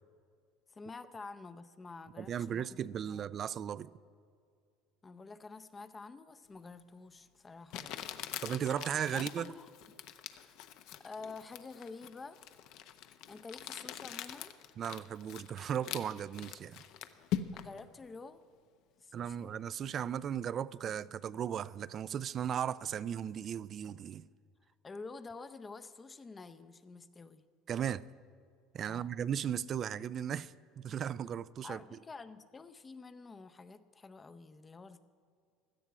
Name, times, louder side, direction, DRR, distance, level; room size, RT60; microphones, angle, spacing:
voice 1, 0.7-3.2 5.0-8.1 9.1-9.7 10.3-10.6 11.0-12.5 13.0-14.5 17.5-18.4 19.0-19.5 24.8-27.5 28.9-29.1 31.6-35.0, left 4 dB, 20° left, 0.6 m, -49 dB
voice 2, 2.2-3.9 8.4-9.5 14.8-16.8 19.1-24.3 27.7-28.0 28.7-31.8, right 9 dB, 35° right, 0.3 m, -36 dB
Crumpling crinkling, 6.8-6.9 7.7-17.8, left 11 dB, 60° left, 0.7 m, -43 dB
16.5 x 12.5 x 4.8 m
cardioid pair, 130°, 0 cm